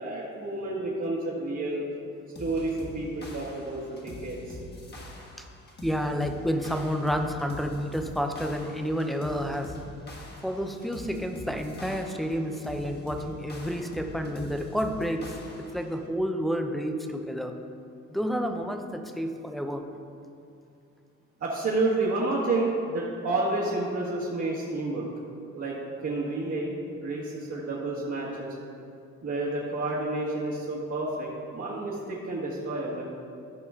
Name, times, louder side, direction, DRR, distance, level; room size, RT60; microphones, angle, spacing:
voice 1, 0.0-1.8 2.4-4.6 21.4-25.1 25.5-26.7 27.0-28.5 29.2-33.0, right 2 dB, 50° right, -7 dB, 1.7 m, -30 dB
sound 1, 2.3-15.9, equal, 35° left, 1.6 m, -44 dB
voice 2, 5.8-9.7 10.4-15.3 15.6-17.5 18.1-19.8, equal, ahead, 5 dB, 0.7 m, -30 dB
14.0 x 5.1 x 3.7 m, 2.5 s
cardioid pair, 90°, 30 cm